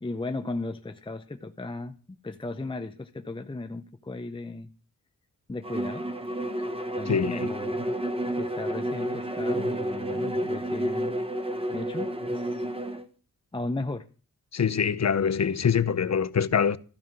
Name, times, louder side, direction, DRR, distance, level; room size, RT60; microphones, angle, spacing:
voice 1, 0.0-4.7 5.5-6.1 7.0-8.0 8.3-11.2 11.7-12.7 13.5-14.1, left 2 dB, 15° left, 0.6 m, -36 dB
Bowed string instrument, 5.6-13.1, right 1 dB, 15° right, 1.2 m, -30 dB
voice 2, 7.1-7.5 14.5-16.8, left 7 dB, 50° left, 0.7 m, -24 dB
13.5 x 5.5 x 7.6 m
wide cardioid pair, 95°, 35 cm